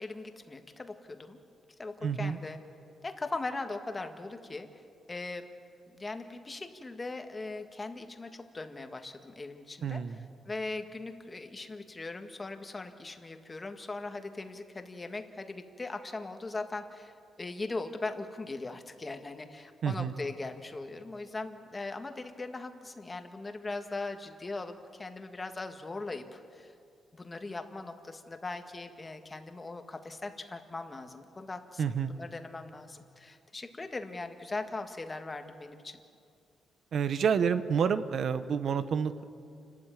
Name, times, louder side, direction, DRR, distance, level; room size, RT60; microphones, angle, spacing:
voice 1, 0.0-1.4 1.8-2.6 3.0-4.8 5.1-5.5 5.9-26.7 27.1-36.0, left 3 dB, 20° left, 6 dB, 1.6 m, -40 dB
voice 2, 2.0-2.4 9.8-10.2 19.8-20.1 31.8-32.1 36.9-39.2, right 7 dB, 60° right, 12 dB, 0.8 m, -29 dB
29.0 x 13.0 x 9.2 m, 2.4 s
cardioid pair, 125°, 0 cm